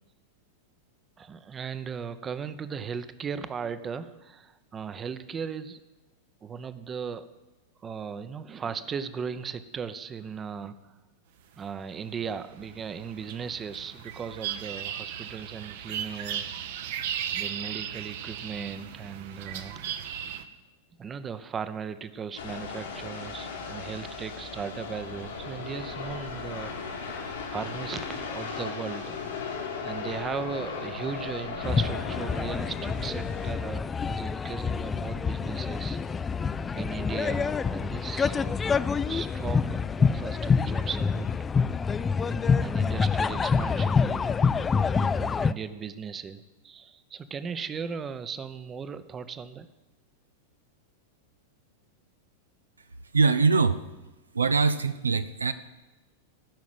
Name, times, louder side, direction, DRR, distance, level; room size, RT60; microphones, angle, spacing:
voice 1, 1.2-5.8 6.4-7.3 7.8-11.0 11.6-16.5 17.3-19.9 21.0-27.0 27.5-29.2 29.8-36.0 36.7-38.6 39.1-41.5 42.6-44.3 44.9-49.7, right 6 dB, 20° right, 12 dB, 0.7 m, -37 dB
sound 1, 11.6-20.4, right 9 dB, 55° right, 0.8 m, -36 dB
sound 2, 22.4-33.5, left 5 dB, 75° left, 2.5 m, -37 dB
sound 3, 31.6-45.5, left 5 dB, 20° left, 0.3 m, -27 dB
voice 2, 53.1-53.8 54.3-55.5, right 4 dB, 80° right, 11 dB, 0.5 m, -22 dB
14.5 x 6.2 x 7.8 m, 1.1 s
figure-of-eight pair, 95°, 0 cm